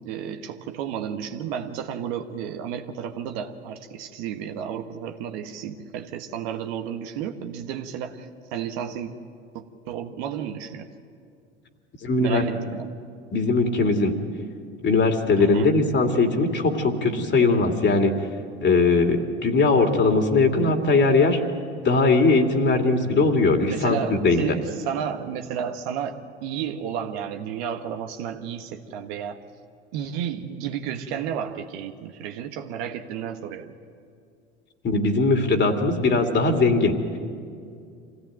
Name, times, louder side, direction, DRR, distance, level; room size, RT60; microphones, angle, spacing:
voice 1, 0.0-9.1 9.5-10.9 12.2-12.9 15.4-15.7 23.7-29.4 29.9-33.7, right 8 dB, 65° right, 5 dB, 1.5 m, -32 dB
voice 2, 12.0-12.4 13.3-14.1 14.8-18.1 18.6-21.4 21.8-24.4 34.8-37.0, left 3 dB, 35° left, 4 dB, 2.7 m, -20 dB
25.5 x 16.5 x 9.4 m, 2.3 s
hypercardioid pair, 80°, 33 cm